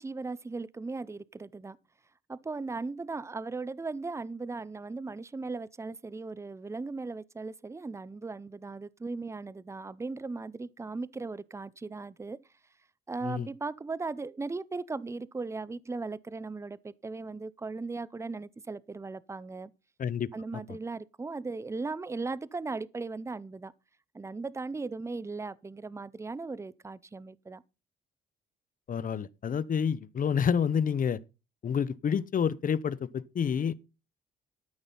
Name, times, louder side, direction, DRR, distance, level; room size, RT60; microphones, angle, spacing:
voice 1, 0.0-1.8 2.3-12.4 13.1-19.7 20.3-23.7 24.1-27.6, right 3 dB, 15° right, 0.6 m, -37 dB
voice 2, 20.0-20.6 28.9-31.2 31.6-33.7, left 7 dB, 45° left, 0.7 m, -29 dB
13.0 x 6.0 x 5.4 m
cardioid pair, 90°, 20 cm